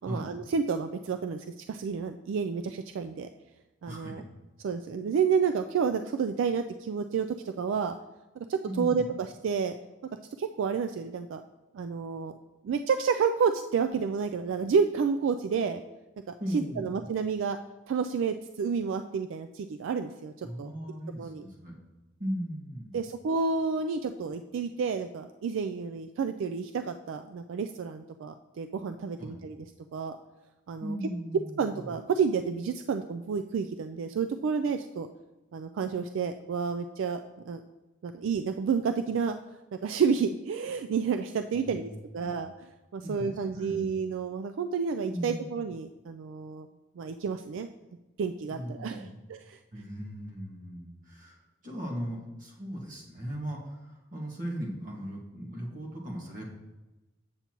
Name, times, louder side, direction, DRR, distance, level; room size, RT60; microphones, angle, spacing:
voice 1, 0.0-3.3 3.8-4.2 4.6-7.9 8.4-9.8 10.4-11.4 11.7-12.3 12.6-15.8 16.5-17.6 17.9-20.7 21.2-21.4 22.9-29.6 29.9-30.2 30.7-31.0 31.6-35.1 35.5-37.2 37.5-37.6 38.0-39.4 39.8-42.7 42.9-46.7 47.0-47.7 48.2-49.6, right 6 dB, 75° right, 7 dB, 0.3 m, -30 dB
voice 2, 3.8-4.2 8.7-9.1 16.4-16.9 20.4-21.7 22.2-23.0 29.2-29.3 30.8-32.0 41.5-42.4 43.0-43.8 45.1-45.5 48.5-49.2 49.7-56.4, equal, 40° right, -2 dB, 1.6 m, -38 dB
8.0 x 7.0 x 3.0 m, 1.1 s
head